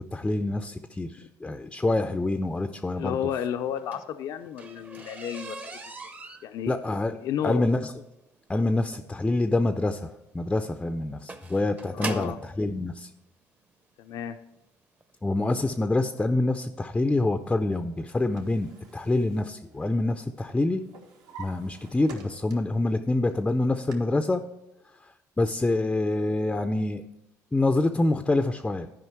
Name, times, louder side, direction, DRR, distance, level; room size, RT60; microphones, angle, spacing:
voice 1, 0.0-3.2 6.7-7.2 7.4-7.9 8.5-13.1 15.2-20.8 21.4-24.4 25.0-27.0 27.5-28.9, left 2 dB, 10° left, 8 dB, 0.4 m, -26 dB
voice 2, 3.0-5.8 6.4-6.7 7.2-7.6 11.9-12.4 14.0-14.4, left 9 dB, 65° left, 8 dB, 0.5 m, -32 dB
sound 1, 3.6-12.5 13.4-13.5 14.1-14.3 14.6-14.7 15.0-15.1, right 3 dB, 25° right, 0.7 m, -41 dB
Drawer open or close, 17.7-20.2 20.5-22.8 23.3-23.9, right 5 dB, 75° right, 1.4 m, -49 dB
11.5 x 5.0 x 4.5 m, 0.90 s
supercardioid pair, 90°, 7 cm